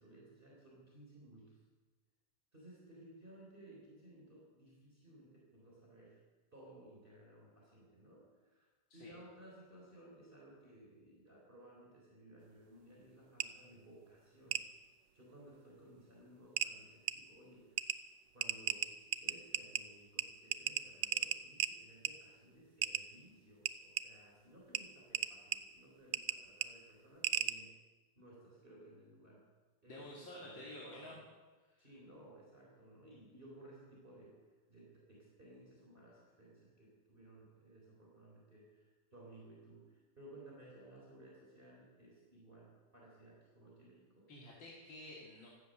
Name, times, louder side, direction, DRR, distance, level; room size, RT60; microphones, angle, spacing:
voice 1, 0.0-1.6 2.5-6.2 6.5-8.7 8.9-14.6 15.1-17.9 18.3-27.7 28.2-29.4 29.8-31.2 31.8-34.4 34.7-44.3, right 1 dB, 25° right, -4 dB, 4.0 m, -58 dB
sound 1, 13.4-13.5 14.5-14.6 16.0-16.1 16.6-16.7 17.1-17.2 17.8-18.0 18.4-19.8 20.2-20.3 20.5-21.7 22.1-22.2 22.8-23.0 23.7-24.0 24.8-24.9 25.1-25.6 26.1-26.4 26.6-26.7 27.2-27.5, right 12 dB, 75° right, 1.3 m, -34 dB
voice 2, 29.9-31.2 31.7-31.8 44.3-45.5, left 1 dB, 80° left, -4 dB, 3.1 m, -51 dB
16.5 x 13.0 x 6.6 m, 1.3 s
omnidirectional pair, 2.1 m